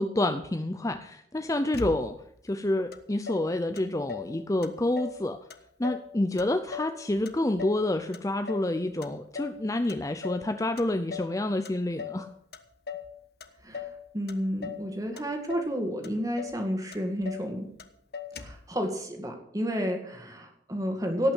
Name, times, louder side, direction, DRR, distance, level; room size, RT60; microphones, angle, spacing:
voice 1, 0.0-2.1 2.4-5.4 5.8-12.3, left 1 dB, 20° left, 9 dB, 0.5 m, -28 dB
Motor vehicle (road), 1.7-2.4 2.9-3.0 3.3-4.3 4.6-5.2 5.5-6.1 6.4-7.8 8.1-8.7 9.0-9.6 9.9-10.5 10.8-11.4 11.6-12.2 12.5-13.1 13.4-14.0 14.3-14.9 15.2-15.7 16.0-16.1 16.4-16.6 16.9-17.5 17.8-17.9 18.1-18.7, left 6 dB, 60° left, 1.1 m, -39 dB
voice 2, 14.1-17.7 18.4-21.3, equal, 20° right, 4 dB, 2.2 m, -31 dB
17.5 x 6.0 x 8.2 m, 0.73 s
head